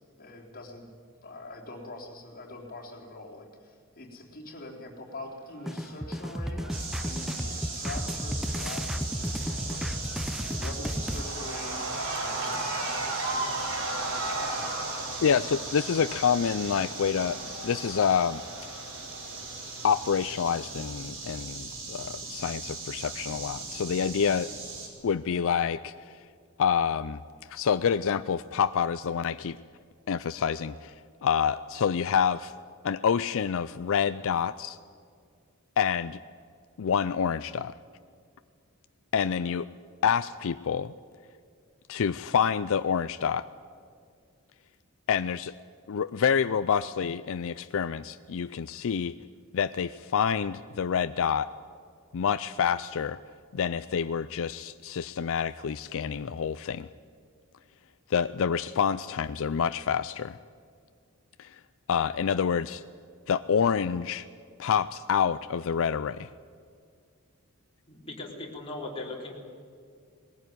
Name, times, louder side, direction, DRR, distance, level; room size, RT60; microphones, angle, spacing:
voice 1, 0.2-0.9 1.2-6.7 7.0-10.1 10.6-14.7 15.1-15.4, left 2 dB, 45° left, -2 dB, 3.7 m, -44 dB
Cheering / Crowd, 5.5-20.8, right 2 dB, 90° right, 4.5 m, -38 dB
sound 1, 5.7-11.2, equal, ahead, 0.6 m, -33 dB
sound 2, 6.7-24.9, right 3 dB, 60° right, 4.9 m, -39 dB
voice 2, 15.2-18.4 18.7-18.8 19.8-24.5 25.0-26.3 26.6-27.2 27.5-29.6 30.1-30.9 31.2-32.5 32.8-34.8 35.8-36.2 36.8-37.7 39.1-39.7 40.0-40.9 41.9-43.5 45.1-45.5 45.9-49.2 49.5-51.5 52.1-53.2 53.5-56.9 58.1-60.4 61.4-61.6 61.9-62.8 63.3-64.3 64.6-66.3, left 7 dB, 65° left, 12 dB, 0.4 m, -27 dB
voice 3, 67.9-69.4, left 2 dB, 25° left, -2 dB, 3.8 m, -38 dB
20.0 x 15.5 x 9.4 m, 2.3 s
head